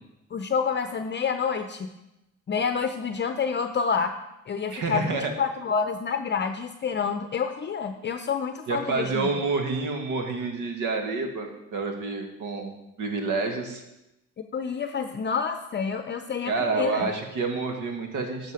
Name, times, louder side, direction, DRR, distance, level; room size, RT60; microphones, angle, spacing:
voice 1, 0.3-1.9 2.5-4.1 4.5-9.4 14.5-17.1, left 6 dB, 35° left, 8 dB, 0.6 m, -28 dB
voice 2, 4.7-5.3 8.7-13.8 16.5-18.5, right 4 dB, 85° right, 4 dB, 1.7 m, -28 dB
11.5 x 6.5 x 5.0 m, 0.91 s
cardioid pair, 90°, 30 cm